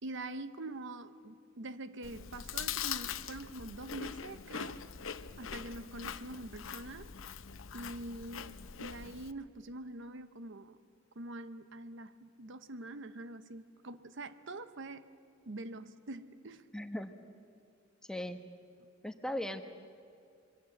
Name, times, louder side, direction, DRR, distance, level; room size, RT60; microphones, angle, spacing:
voice 1, 0.0-4.8 5.4-7.1 7.7-10.8 11.2-15.1 15.5-16.6, right 2 dB, 65° right, 12 dB, 0.9 m, -45 dB
Chewing mastication, 2.0-9.3, left 8 dB, 85° left, 0.8 m, -42 dB
voice 2, 16.7-17.1 18.1-18.4 19.0-19.6, left 1 dB, 5° left, 7 dB, 1.1 m, -37 dB
26.0 x 23.0 x 7.9 m, 2.3 s
head